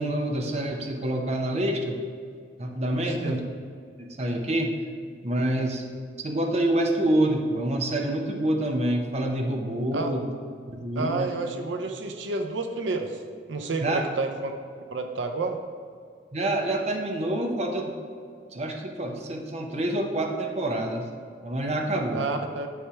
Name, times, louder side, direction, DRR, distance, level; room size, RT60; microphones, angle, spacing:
voice 1, 0.0-2.0 2.6-3.4 4.0-4.7 5.2-5.8 6.2-10.3 10.7-11.3 13.8-14.1 16.3-17.9 18.5-21.1 21.4-22.3, right 1 dB, 35° right, 2 dB, 0.8 m, -27 dB
voice 2, 10.9-13.2 13.5-14.5 14.9-15.6 22.1-22.7, right 3 dB, 90° right, 5 dB, 0.6 m, -30 dB
9.9 x 3.3 x 5.7 m, 2.2 s
head